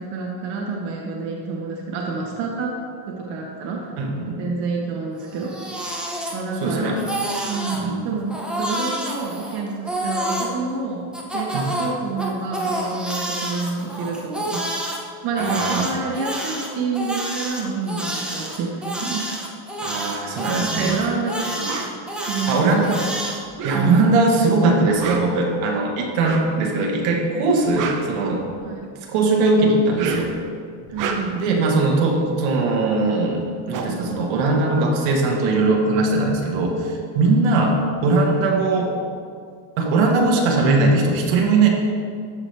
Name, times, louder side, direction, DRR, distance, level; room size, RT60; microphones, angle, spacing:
voice 1, 0.0-2.8 3.1-3.9 4.4-5.5 6.3-7.0 7.5-14.7 15.2-19.2 20.6-21.8 22.2-23.0 23.7-24.2 28.6-28.9 30.9-31.4 37.2-37.5, right 4 dB, 60° right, -1 dB, 1.2 m, -28 dB
voice 2, 4.0-4.4 6.6-7.0 7.8-8.0 11.5-11.7 15.4-15.9 19.8-20.9 22.5-22.9 23.6-28.4 29.1-30.3 31.3-38.9 39.8-41.7, right 3 dB, 80° right, 0 dB, 1.5 m, -20 dB
Crying sobbing, 5.2-6.7 7.0-7.8 8.3-10.5 11.1-15.0 15.4-23.4, right 1 dB, ahead, 0.6 m, -28 dB
sound 1, 21.6-21.9 23.4-24.2 24.9-25.4 26.2-26.6 27.5-28.8 29.8-30.4 30.8-31.5 33.1-33.2 33.4-35.1, right 5 dB, 40° right, 0.8 m, -31 dB
13.5 x 4.9 x 3.3 m, 2.1 s
cardioid pair, 145°, 50 cm